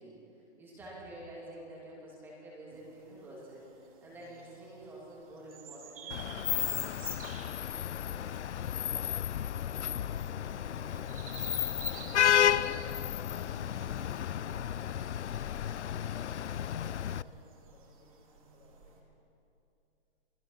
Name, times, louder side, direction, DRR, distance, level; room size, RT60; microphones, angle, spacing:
voice 1, 0.0-6.8, right 1 dB, 5° right, -5 dB, 2.6 m, -49 dB
sound 1, 2.7-19.0, right 5 dB, 30° right, 2.5 m, -52 dB
Vehicle horn car horn honking / Traffic noise roadway noise, 6.1-17.2, left 10 dB, 85° left, 0.6 m, -32 dB
voice 2, 7.7-13.7 14.3-19.1, left 2 dB, 15° left, -1 dB, 2.5 m, -60 dB
28.5 x 20.0 x 5.7 m, 2.7 s
hypercardioid pair, 175°, 34 cm